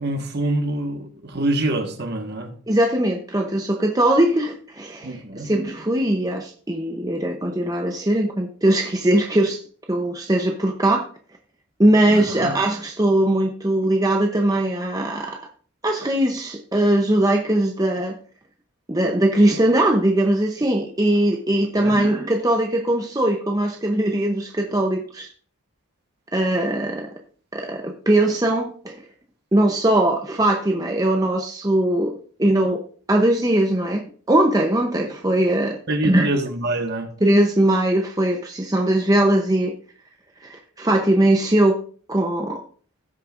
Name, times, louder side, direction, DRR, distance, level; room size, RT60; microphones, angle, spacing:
voice 1, 0.0-2.5 5.0-5.5 12.3-12.5 21.8-22.0 35.9-37.1, right 1 dB, 50° right, 4 dB, 1.4 m, -25 dB
voice 2, 2.7-9.6 9.9-11.1 11.8-15.4 15.8-18.1 18.9-25.3 26.3-27.1 27.5-28.9 29.5-32.1 32.4-32.8 33.1-34.0 34.3-35.8 36.0-36.3 37.2-39.7 40.4-41.8 42.1-42.6, right 1 dB, 15° right, 2 dB, 0.7 m, -20 dB
16.5 x 6.5 x 2.5 m, 0.43 s
head